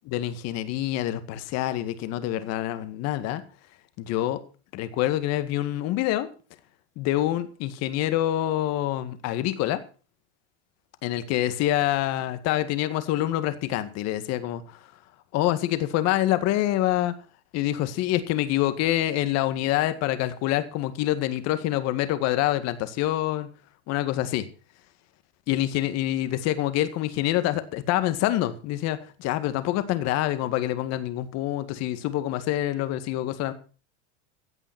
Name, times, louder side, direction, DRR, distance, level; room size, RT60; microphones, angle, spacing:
voice 1, 0.1-3.4 4.0-4.4 4.7-6.3 7.0-9.8 11.0-14.8 15.3-17.1 17.5-23.5 23.9-24.5 25.5-33.5, left 14 dB, 45° left, 11 dB, 1.9 m, -26 dB
16.0 x 9.0 x 6.1 m, 0.38 s
supercardioid pair, 130°, 35 cm